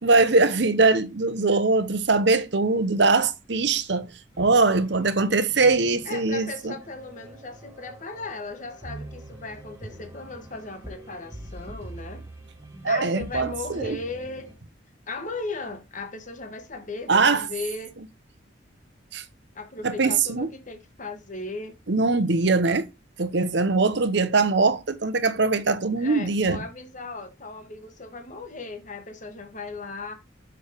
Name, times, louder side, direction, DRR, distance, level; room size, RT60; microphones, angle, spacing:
voice 1, 0.0-6.7 12.8-14.0 17.1-17.5 19.1-19.2 19.8-20.5 21.9-22.9 23.2-26.6, right 3 dB, 60° right, 0.9 m, -22 dB
sound 1, 4.3-14.6, right 1 dB, 15° right, 1.5 m, -44 dB
voice 2, 6.0-12.3 12.9-14.5 15.1-18.0 19.5-21.7 26.0-30.1, left 3 dB, 40° left, 1.4 m, -37 dB
6.4 x 4.6 x 5.0 m
head